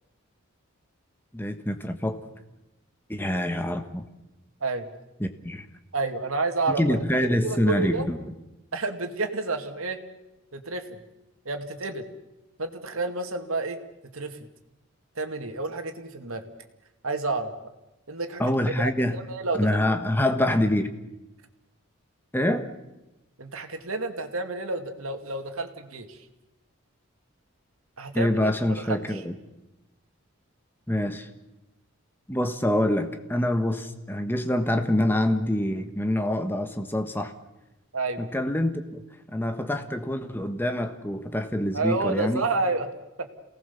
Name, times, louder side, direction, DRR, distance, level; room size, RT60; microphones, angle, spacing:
voice 1, 1.3-2.2 3.1-4.0 5.2-5.7 6.8-8.3 18.4-19.2 19.6-20.9 22.3-22.7 28.1-29.3 30.9-31.3 32.3-37.3 38.2-39.0 39.3-42.4, left 1 dB, 10° left, 7 dB, 1.4 m, -26 dB
voice 2, 5.9-7.0 7.4-8.0 8.7-10.0 10.5-11.0 11.5-12.0 12.6-13.8 14.1-14.4 15.2-16.5 17.0-17.5 18.1-18.4 18.8-19.7 23.4-26.2 28.0-28.3 28.8-29.0 37.9-38.2 41.7-42.9 43.2-43.3, right 3 dB, 80° right, 6 dB, 2.3 m, -29 dB
28.0 x 18.5 x 7.1 m, 0.96 s
head